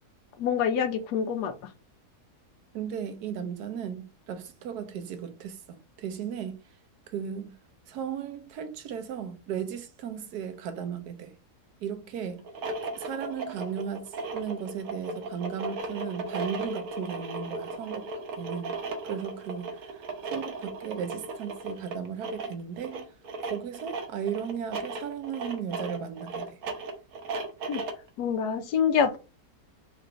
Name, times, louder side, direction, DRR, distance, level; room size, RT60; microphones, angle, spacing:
voice 1, 0.4-1.5 27.7-27.8 28.2-29.2, left 7 dB, 90° left, 1.2 m, -26 dB
voice 2, 2.7-6.6 7.1-7.6 7.9-11.4 11.8-12.4 13.0-18.1 18.4-18.7 19.0-23.1 23.5-26.6, right 8 dB, 85° right, 1.3 m, -36 dB
sound 1, 12.4-28.1, right 3 dB, 70° right, 1.2 m, -36 dB
3.9 x 2.6 x 4.4 m
omnidirectional pair, 1.7 m